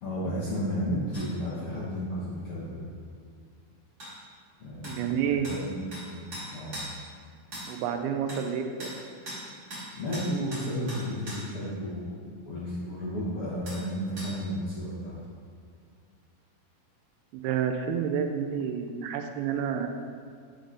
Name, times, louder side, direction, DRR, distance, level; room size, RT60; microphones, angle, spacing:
voice 1, 0.0-2.8 4.6-5.0 5.3-5.7 6.0-6.2 6.5-6.7 10.0-12.1 12.4-15.2, equal, 60° left, -10 dB, 1.5 m, -32 dB
sound 1, 1.1-1.3 4.0-4.1 4.8-5.0 5.4-5.6 5.9-6.1 6.3-6.9 7.5-7.7 8.3-8.4 8.8-9.0 9.3-9.4 9.7-9.9 10.1-11.4 13.7-13.8 14.2-14.3, right 1 dB, 30° right, 2.1 m, -39 dB
voice 2, 4.8-5.5 7.7-8.9 17.3-19.9, right 8 dB, 85° right, 6 dB, 2.5 m, -29 dB
9.5 x 5.0 x 3.9 m, 2.1 s
omnidirectional pair, 4.4 m